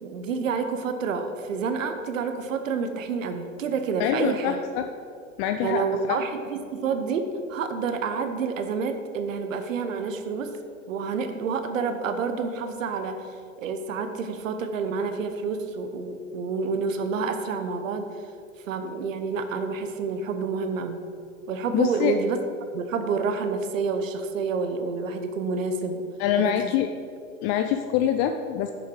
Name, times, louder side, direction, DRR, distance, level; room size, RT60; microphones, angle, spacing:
voice 1, 0.0-4.6 5.6-10.5 10.9-18.1 18.7-21.0 21.5-22.4 22.7-26.1 26.4-26.5, right 5 dB, 70° right, 8 dB, 1.0 m, -28 dB
voice 2, 4.0-4.9 5.4-6.2 21.7-22.2 26.2-26.9 27.4-28.7, left 10 dB, 30° left, 7 dB, 0.4 m, -25 dB
10.0 x 6.6 x 4.9 m, 2.4 s
hypercardioid pair, 95°, 41 cm